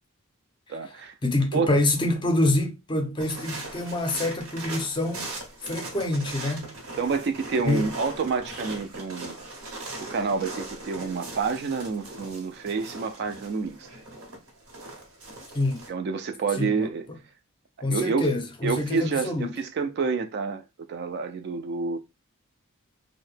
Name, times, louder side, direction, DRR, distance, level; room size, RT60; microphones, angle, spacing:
voice 1, 0.7-1.1 1.5-1.7 7.0-9.4 10.0-13.9 15.9-17.1 17.9-18.3 18.6-20.6 20.9-22.0, right 4 dB, 50° right, 0.3 m, -28 dB
voice 2, 1.2-5.3 5.6-6.7 7.7-7.9 15.5-15.9 16.6-16.9 17.8-19.5, left 2 dB, 20° left, 0.5 m, -26 dB
sound 1, 3.2-15.9, right 2 dB, 85° right, 0.9 m, -39 dB
2.7 x 2.1 x 3.2 m
head